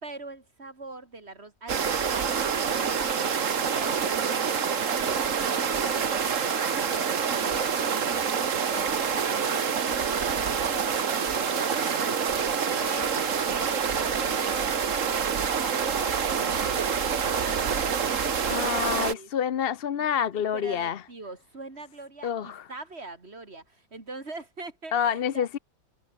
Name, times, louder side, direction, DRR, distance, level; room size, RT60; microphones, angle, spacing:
voice 1, 0.0-3.2 3.7-5.3 5.6-12.3 12.8-19.3 20.0-20.1 20.3-25.5, right 3 dB, 45° right, 3.6 m, -43 dB
sound 1, 1.7-19.1, right 6 dB, 60° right, 1.8 m, -27 dB
voice 2, 18.5-21.0 22.2-22.6 24.9-25.6, left 8 dB, 50° left, 0.8 m, -27 dB
omnidirectional pair, 1.5 m